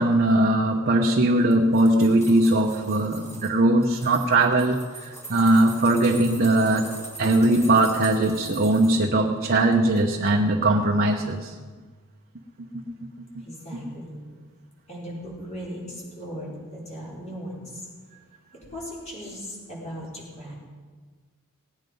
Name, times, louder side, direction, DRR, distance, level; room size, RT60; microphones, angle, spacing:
voice 1, 0.0-6.9 7.2-11.5, right 1 dB, 45° right, 0 dB, 0.9 m, -20 dB
sound 1, 1.4-3.5 3.8-9.0 9.5-10.0 10.3-10.4, right 1 dB, 15° left, 3.1 m, -42 dB
voice 2, 13.4-14.3 14.9-17.8 18.5-20.6, equal, 30° left, -5 dB, 5.2 m, -38 dB
18.5 x 9.6 x 5.4 m, 1.5 s
head